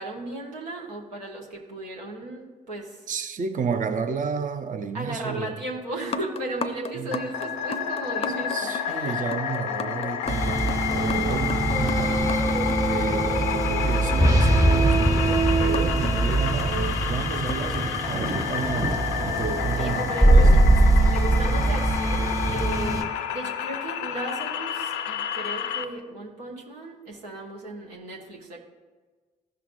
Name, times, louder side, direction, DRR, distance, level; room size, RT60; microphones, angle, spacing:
voice 1, 0.0-3.0 4.9-9.2 19.8-20.6 21.0-28.6, right 1 dB, 90° right, -2 dB, 1.0 m, -35 dB
voice 2, 3.1-5.6 7.0-7.1 8.5-12.4 12.8-20.6, right 6 dB, 40° right, 7 dB, 0.6 m, -31 dB
sound 1, 6.0-13.7 15.7-18.7 19.9-20.9 21.6-21.9 22.4-22.5, left 2 dB, 30° left, 0.5 m, -37 dB
sound 2, 7.1-25.8, left 9 dB, 80° left, 0.4 m, -30 dB
sound 3, 10.3-23.0, right 2 dB, 15° right, 1.0 m, -22 dB
13.5 x 5.8 x 2.6 m, 1.4 s
hypercardioid pair, 45°, 20 cm